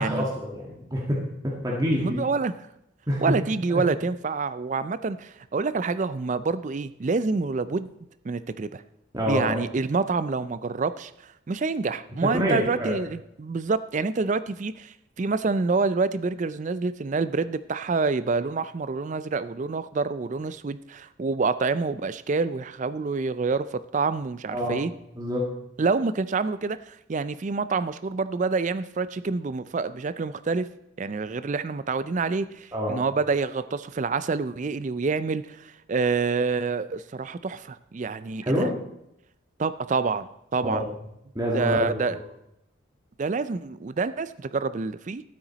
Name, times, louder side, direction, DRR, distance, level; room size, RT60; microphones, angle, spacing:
voice 1, 0.0-2.2 3.1-3.2 3.7-3.8 9.1-9.6 12.2-13.0 24.5-24.8 25.2-25.4 32.7-33.0 38.4-38.8 40.6-40.9 41.3-42.2, equal, 20° right, -3 dB, 1.5 m, -27 dB
voice 2, 2.0-2.5 3.2-7.9 8.2-8.8 9.2-11.1 11.5-24.9 25.8-30.7 31.0-38.7 39.6-40.9 41.5-42.2 43.2-45.2, right 4 dB, 35° right, 14 dB, 0.4 m, -27 dB
13.0 x 8.9 x 4.0 m, 0.81 s
head